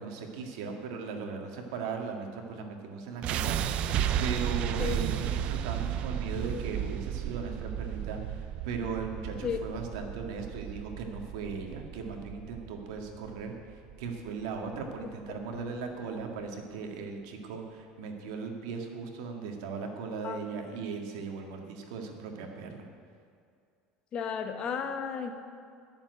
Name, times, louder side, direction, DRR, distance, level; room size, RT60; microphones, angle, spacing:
voice 1, 0.0-3.6 3.9-22.9, right 5 dB, 85° right, 3 dB, 1.9 m, -38 dB
sound 1, 3.2-15.3, right 10 dB, 45° right, 0.5 m, -34 dB
voice 2, 24.1-25.3, left 7 dB, 35° left, 5 dB, 1.0 m, -33 dB
11.0 x 7.2 x 9.2 m, 2.3 s
cardioid pair, 150°, 3 cm